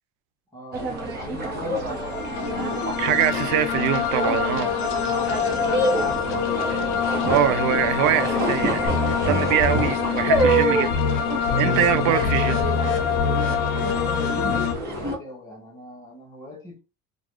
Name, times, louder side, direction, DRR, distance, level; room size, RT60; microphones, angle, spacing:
voice 1, 0.5-2.6 3.0-3.5 5.1-6.0 13.6-16.8, left 1 dB, 10° left, 1.2 m, -40 dB
sound 1, 0.7-15.2, right 2 dB, 30° right, 1.0 m, -27 dB
sound 2, 1.9-14.7, left 9 dB, 65° left, 0.7 m, -26 dB
voice 2, 3.0-4.7 7.3-10.9 11.6-12.6, right 11 dB, 65° right, 0.5 m, -23 dB
sound 3, 8.8-9.9 10.3-10.6 10.9-11.2 11.5-14.8, left 4 dB, 40° left, 1.3 m, -26 dB
3.9 x 2.5 x 3.0 m
cardioid pair, 165°, 32 cm